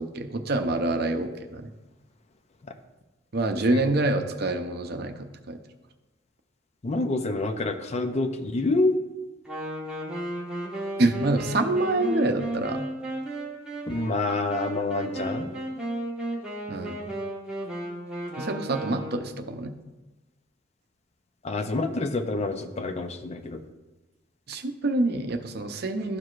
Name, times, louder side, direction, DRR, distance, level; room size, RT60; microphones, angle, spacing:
voice 1, 0.0-1.7 3.3-5.6 11.0-12.9 16.7-17.0 18.4-19.7 24.5-26.2, right 2 dB, 55° right, 6 dB, 0.6 m, -26 dB
voice 2, 6.8-9.0 13.9-15.5 21.4-23.6, left 2 dB, 35° left, 6 dB, 0.5 m, -27 dB
Wind instrument woodwind instrument, 9.5-19.4, right 1 dB, 5° right, 1.4 m, -34 dB
13.0 x 4.7 x 2.5 m, 1.1 s
head